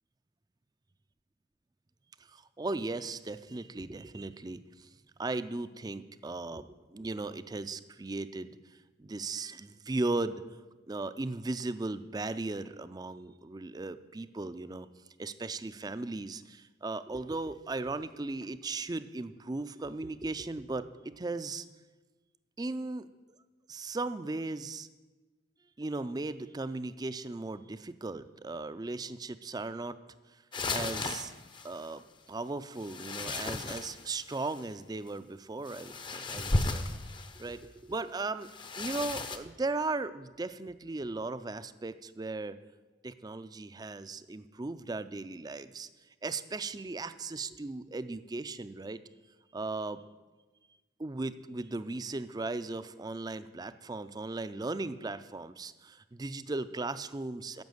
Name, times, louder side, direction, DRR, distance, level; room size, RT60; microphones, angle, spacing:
voice 1, 2.2-4.9 5.2-10.4 10.9-14.9 15.2-21.7 22.6-23.1 23.7-24.9 25.8-30.0 30.3-30.4 30.7-31.3 31.6-32.0 32.3-36.8 37.4-38.5 38.8-42.6 43.0-45.9 46.2-49.0 49.5-50.0 51.0-57.6, right 3 dB, 20° right, 13 dB, 0.4 m, -37 dB
sound 1, 30.5-31.8 32.8-34.6 35.7-37.6 38.4-39.4, left 2 dB, 25° left, 0.6 m, -35 dB
10.5 x 7.3 x 7.9 m, 1.2 s
head